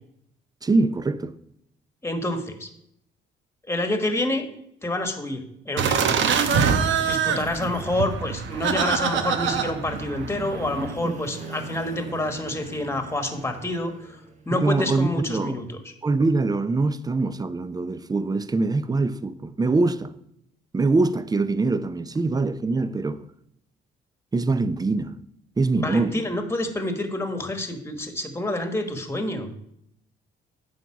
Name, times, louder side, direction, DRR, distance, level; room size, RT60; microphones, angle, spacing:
voice 1, 0.6-1.4 11.0-11.1 14.5-15.6 16.0-20.1 20.7-23.2 24.3-25.2 25.6-26.2, right 3 dB, 20° right, 0.5 m, -23 dB
voice 2, 2.0-2.7 3.7-4.4 4.8-6.4 7.0-14.2 14.5-15.8 25.7-29.5, left 1 dB, 10° left, 1.4 m, -28 dB
sound 1, 5.8-10.9, right 7 dB, 70° right, 0.9 m, -24 dB
sound 2, 8.9-14.6, right 2 dB, 35° right, 1.6 m, -40 dB
9.3 x 3.9 x 7.1 m
cardioid pair, 90°, 20 cm